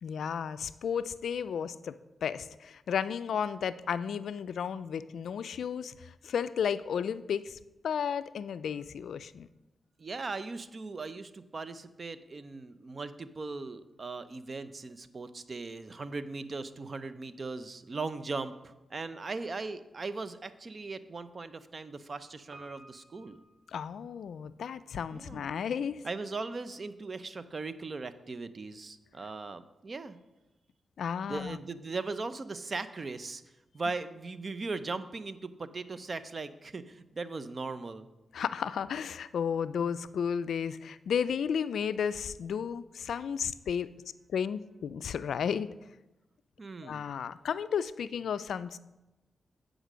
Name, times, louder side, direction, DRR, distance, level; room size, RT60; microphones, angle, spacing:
voice 1, 0.0-1.9 2.2-7.6 7.8-9.5 23.7-26.0 31.0-31.6 38.3-43.9 44.3-45.7 46.8-48.8, left 7 dB, 80° left, 14 dB, 0.3 m, -33 dB
voice 2, 10.0-23.4 25.1-25.5 26.0-30.2 31.3-33.4 33.7-38.1 46.6-47.1, right 3 dB, 50° right, 13 dB, 0.6 m, -39 dB
Piano, 22.5-24.6 24.8-24.9, right 1 dB, 65° right, 2.2 m, -56 dB
8.1 x 5.0 x 6.2 m, 1.0 s
supercardioid pair, 45°, 0 cm